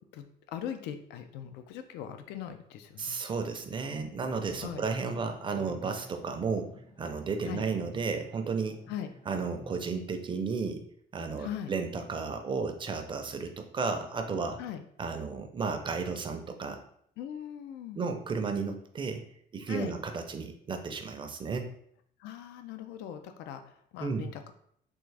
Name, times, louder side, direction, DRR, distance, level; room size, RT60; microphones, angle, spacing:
voice 1, 0.1-3.2 4.6-4.8 7.4-7.6 8.9-9.1 11.4-11.7 14.6-14.8 17.2-18.0 19.7-19.9 22.2-24.5, left 9 dB, 85° left, 8 dB, 0.4 m, -40 dB
voice 2, 3.0-6.7 7.0-8.8 9.3-10.8 11.1-14.6 15.0-16.8 17.9-19.2 19.5-21.7 24.0-24.3, right 4 dB, 30° right, 6 dB, 0.5 m, -33 dB
sound 1, 4.1-9.9, left 1 dB, 50° left, 0.9 m, -52 dB
3.5 x 2.5 x 3.2 m, 0.67 s
cardioid pair, 110°, 17 cm